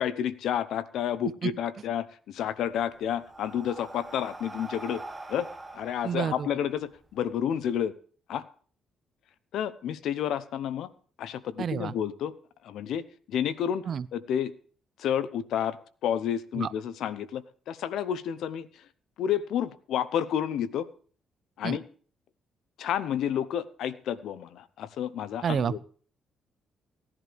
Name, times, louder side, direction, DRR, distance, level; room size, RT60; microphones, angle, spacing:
voice 1, 0.0-5.0 5.3-7.9 8.3-8.5 9.5-10.9 11.2-12.3 12.6-13.0 13.3-14.5 15.0-18.8 19.2-20.9 21.6-21.8 22.8-25.8, left 9 dB, 80° left, 16 dB, 0.8 m, -30 dB
Breathing, 2.5-7.2, right 2 dB, 15° right, 1.7 m, -44 dB
voice 2, 6.0-6.5 11.6-11.9 13.9-14.1 16.6-16.7 21.6-21.8 25.4-25.8, right 7 dB, 55° right, 18 dB, 0.5 m, -29 dB
17.5 x 11.0 x 3.4 m, 0.43 s
cardioid pair, 90°, 0 cm